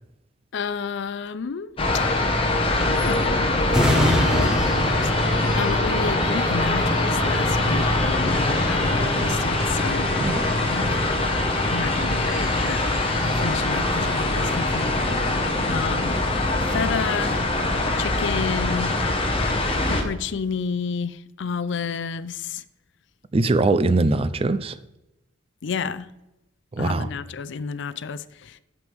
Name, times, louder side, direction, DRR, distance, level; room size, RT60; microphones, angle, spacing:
voice 1, 0.5-1.8 2.8-10.1 10.6-11.0 11.7-13.0 13.2-15.0 15.7-16.2 16.6-17.5 18.0-19.0 19.9-22.6 25.6-26.1 26.8-28.6, left 5 dB, 65° left, 0.5 m, -31 dB
sound 1, 1.8-20.0, left 2 dB, 30° left, 1.2 m, -23 dB
sound 2, 3.7-17.0 17.5-17.6, left 1 dB, 5° right, 1.3 m, -30 dB
voice 2, 10.2-10.6 23.3-24.8 26.7-27.1, right 2 dB, 30° right, 0.4 m, -22 dB
9.3 x 7.5 x 3.4 m
head